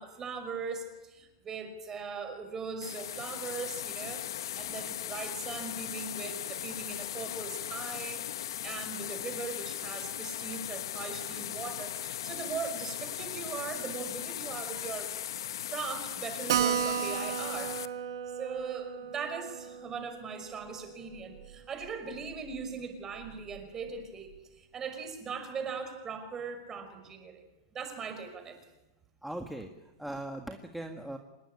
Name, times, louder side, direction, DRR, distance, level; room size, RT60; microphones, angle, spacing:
voice 1, 0.0-15.1 15.7-17.8 18.3-27.4 27.7-28.6, right 5 dB, 20° right, 8 dB, 5.5 m, -40 dB
sound 1, 2.8-17.9, left 11 dB, 85° left, 1.3 m, -38 dB
Keyboard (musical), 16.5-21.6 21.8-21.9 22.2-22.3 22.6-22.7 23.2-23.6, right 8 dB, 85° right, 2.7 m, -34 dB
voice 2, 29.2-31.2, right 1 dB, ahead, 4 dB, 1.7 m, -40 dB
26.0 x 21.5 x 9.8 m, 1.0 s
supercardioid pair, 150°, 2 cm